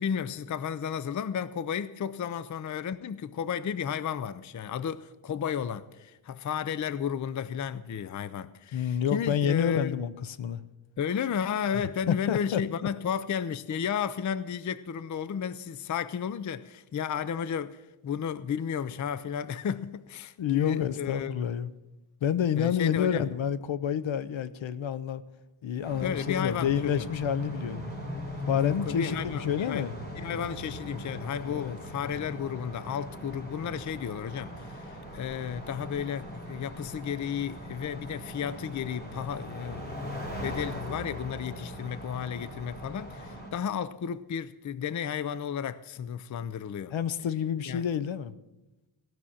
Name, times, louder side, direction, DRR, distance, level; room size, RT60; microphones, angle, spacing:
voice 1, 0.0-10.0 11.0-21.5 22.6-23.3 26.0-27.1 28.6-29.9 30.2-46.9 47.7-47.8, left 8 dB, 40° left, 0.5 m, -33 dB
voice 2, 8.7-10.6 12.1-12.6 20.4-21.7 22.2-25.2 25.6-27.9 28.5-29.9 31.5-31.8 46.9-48.3, left 8 dB, 70° left, 0.7 m, -29 dB
sound 1, 25.8-43.5, equal, 20° left, 3.4 m, -40 dB
17.0 x 6.1 x 8.5 m
wide cardioid pair, 150°, 49 cm